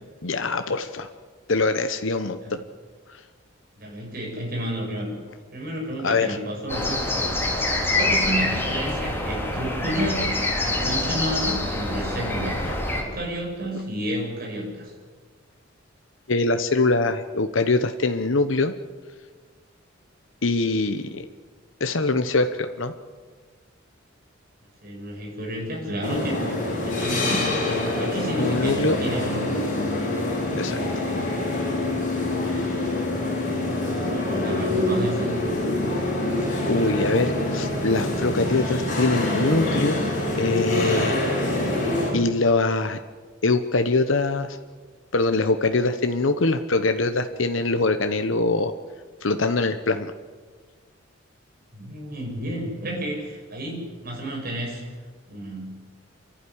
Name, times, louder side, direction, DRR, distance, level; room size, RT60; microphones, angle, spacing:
voice 1, 0.2-1.1 1.5-2.6 3.1-3.2 6.0-6.4 12.6-12.7 16.3-18.7 20.4-21.3 21.8-22.9 28.4-29.0 30.6-30.8 36.6-40.0 40.4-41.2 42.1-43.0 43.4-44.6 45.1-48.7 49.2-50.1, left 3 dB, 70° left, 8 dB, 1.0 m, -23 dB
voice 2, 3.8-5.2 5.5-7.4 7.9-14.9 24.8-26.5 27.0-27.4 28.0-29.7 34.1-35.3 51.7-54.8 55.3-55.7, equal, 45° right, -1 dB, 7.6 m, -31 dB
sound 1, 6.7-13.0, left 2 dB, 10° left, 3.9 m, -25 dB
sound 2, 26.0-42.1, left 1 dB, 40° left, 7.3 m, -25 dB
28.5 x 12.0 x 10.0 m, 1.5 s
head